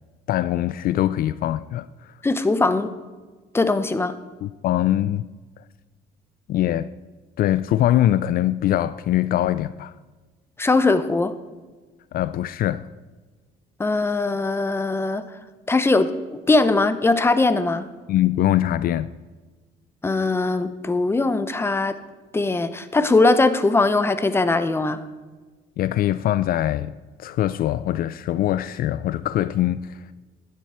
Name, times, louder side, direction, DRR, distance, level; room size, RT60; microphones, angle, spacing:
voice 1, 0.3-1.9 4.4-5.2 6.5-6.9 7.4-9.9 12.1-12.9 18.1-19.1 25.8-26.9 27.2-30.0, left 13 dB, 60° left, 15 dB, 0.4 m, -22 dB
voice 2, 2.2-2.9 3.5-4.1 10.6-11.3 13.8-15.2 15.7-17.9 20.0-22.0 22.3-25.0, left 3 dB, 15° left, 11 dB, 0.8 m, -20 dB
12.0 x 9.8 x 4.3 m, 1.3 s
cardioid pair, 110°, 17 cm